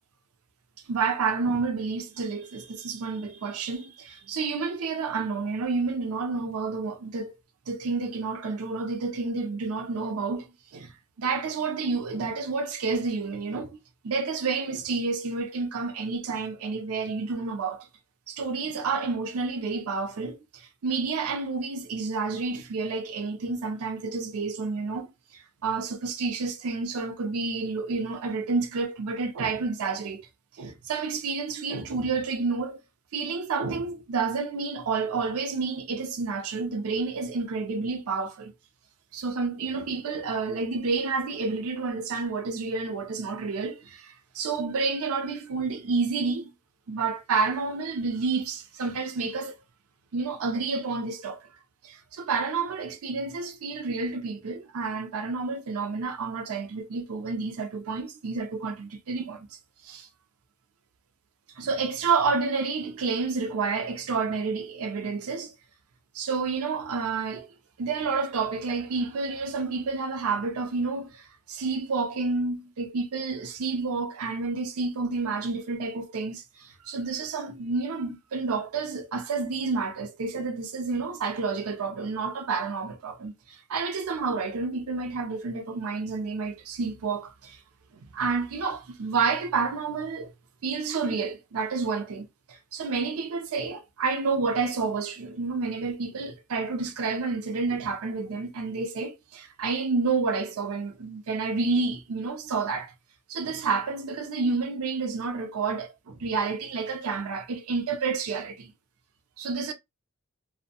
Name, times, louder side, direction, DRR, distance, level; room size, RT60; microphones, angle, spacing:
voice 1, 0.9-7.3 7.7-10.5 10.7-10.9 11.2-13.8 14.0-17.9 18.3-25.1 25.6-30.2 30.6-32.8 33.1-38.5 39.1-46.5 46.9-49.6 50.1-51.4 51.8-59.5 59.8-60.1 61.6-65.5 66.1-67.5 67.8-87.6 88.1-90.3 90.6-102.9 103.3-108.7 109.4-109.7, right 4 dB, 85° right, 0.5 m, -29 dB
2.5 x 2.1 x 2.7 m
head